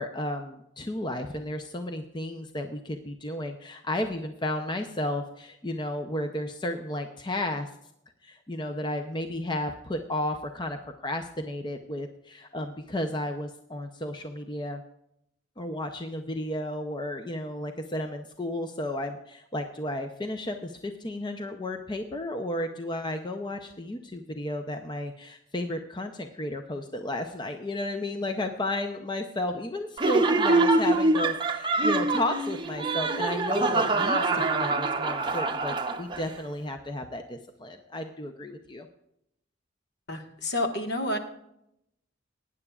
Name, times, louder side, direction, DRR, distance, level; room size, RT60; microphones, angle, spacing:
voice 1, 0.0-7.7 8.2-14.8 15.6-38.9, left 1 dB, 25° left, 5 dB, 0.6 m, -33 dB
Laughter, 30.0-36.3, right 2 dB, 25° right, 0.7 m, -25 dB
voice 2, 40.1-41.2, left 1 dB, 55° left, 5 dB, 1.5 m, -29 dB
19.5 x 9.9 x 2.4 m, 0.79 s
head